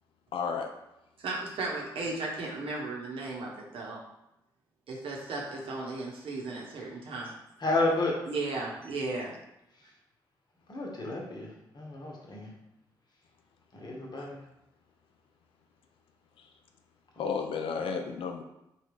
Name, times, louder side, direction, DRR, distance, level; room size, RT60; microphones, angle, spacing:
voice 1, 0.3-0.7 14.2-14.3 16.4-16.5 17.2-18.4, left 5 dB, 65° left, 4 dB, 0.4 m, -32 dB
voice 2, 1.2-4.0 4.9-7.3 8.3-9.3, right 3 dB, 65° right, -3 dB, 0.9 m, -35 dB
voice 3, 7.6-8.1 10.7-11.5 11.7-12.5 13.7-14.4, left 2 dB, 45° left, -2 dB, 1.0 m, -30 dB
3.1 x 2.3 x 3.3 m, 0.87 s
hypercardioid pair, 45°, 10 cm